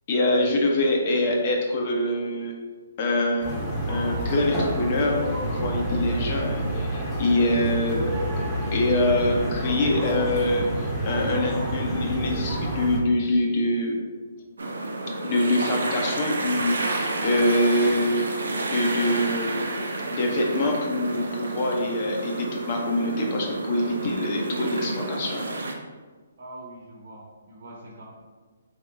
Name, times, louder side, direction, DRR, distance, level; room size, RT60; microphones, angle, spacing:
voice 1, 0.1-2.5 3.0-3.6 3.9-8.2 8.7-14.0 15.2-18.3 18.6-19.7 20.1-25.5, left 1 dB, 40° left, 0 dB, 0.9 m, -25 dB
sound 1, 3.4-13.0, right 1 dB, 5° left, 1.0 m, -28 dB
sound 2, 14.6-25.7, right 2 dB, 80° right, 0.6 m, -30 dB
voice 2, 26.4-28.0, right 1 dB, 60° right, -3 dB, 1.0 m, -43 dB
3.7 x 3.0 x 3.4 m, 1.4 s
hypercardioid pair, 140°, 0 cm